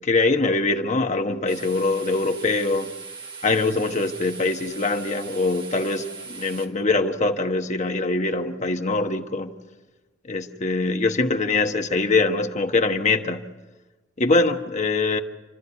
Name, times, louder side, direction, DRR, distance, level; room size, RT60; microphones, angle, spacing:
voice 1, 0.0-2.9 3.4-9.5 10.2-13.5 14.2-15.2, left 3 dB, 40° left, 1.3 m, -23 dB
sound 1, 1.5-6.7, right 4 dB, 30° right, 2.3 m, -39 dB
29.0 x 13.0 x 8.3 m
head